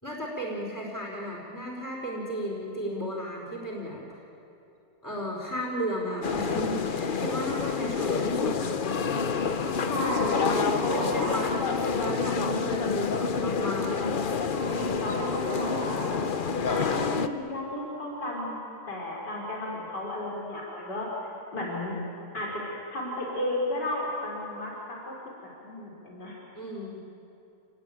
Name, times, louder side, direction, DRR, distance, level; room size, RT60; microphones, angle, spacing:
voice 1, 0.0-4.0 5.0-8.6 10.5-13.9 26.5-27.0, equal, 10° left, -3 dB, 4.3 m, -34 dB
sound 1, 6.2-17.3, left 5 dB, 40° left, 0.8 m, -28 dB
voice 2, 9.9-11.3 14.5-21.1 21.5-22.0 22.3-22.6 22.9-25.1 25.6-26.4, left 1 dB, 90° left, -4 dB, 4.5 m, -33 dB
28.5 x 20.0 x 9.1 m, 2.8 s
omnidirectional pair, 1.8 m